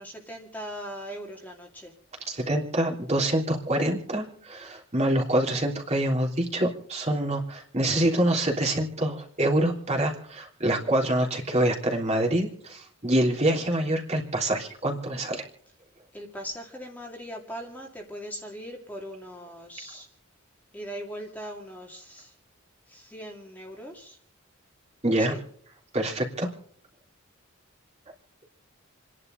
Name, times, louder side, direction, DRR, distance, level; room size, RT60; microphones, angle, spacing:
voice 1, 0.0-1.9 16.1-20.1 20.7-22.3 22.9-24.2 25.2-25.4, equal, 10° left, 0 dB, 2.3 m, -40 dB
voice 2, 2.3-15.4 25.0-25.3 25.9-26.5, right 1 dB, 30° right, 0 dB, 3.3 m, -26 dB
29.0 x 11.0 x 3.9 m, 0.62 s
head